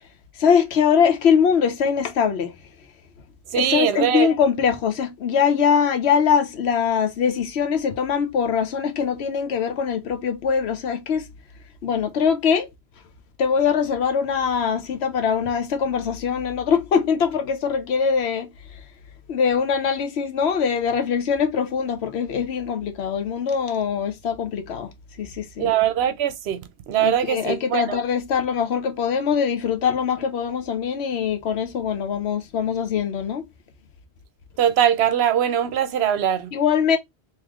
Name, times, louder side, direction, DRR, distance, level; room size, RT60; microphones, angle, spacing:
voice 1, 0.4-2.6 3.5-11.2 11.8-12.7 13.4-18.5 19.3-24.9 25.2-25.7 27.0-33.4 36.5-37.0, left 7 dB, 80° left, 1.0 m, -22 dB
voice 2, 3.5-4.3 25.6-26.6 26.9-28.0 34.6-36.5, right 10 dB, 75° right, 0.9 m, -21 dB
3.2 x 3.0 x 3.6 m
omnidirectional pair, 1.1 m